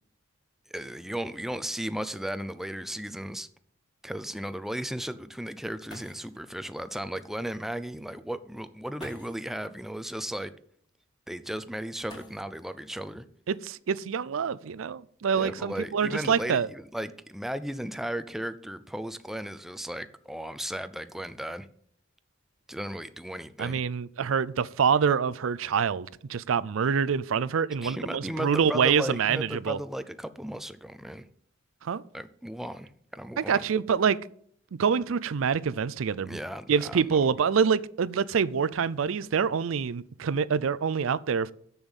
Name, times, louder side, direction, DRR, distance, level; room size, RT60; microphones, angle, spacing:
voice 1, 0.7-3.5 4.0-10.5 11.3-13.2 15.3-21.7 22.7-23.8 27.8-31.3 32.1-33.6 36.3-37.3, right 1 dB, ahead, 0.5 m, -35 dB
sound 1, 5.9-6.4 7.7-7.8 8.9-9.5 12.0-12.8 14.2-14.3 15.0-16.4 17.1-17.5 17.9-18.3, left 1 dB, 20° left, 2.6 m, -50 dB
voice 2, 13.5-16.7 23.6-29.8 31.8-32.0 33.4-34.2 34.8-36.4 36.7-41.5, right 6 dB, 75° right, 0.4 m, -26 dB
7.1 x 7.0 x 8.2 m
head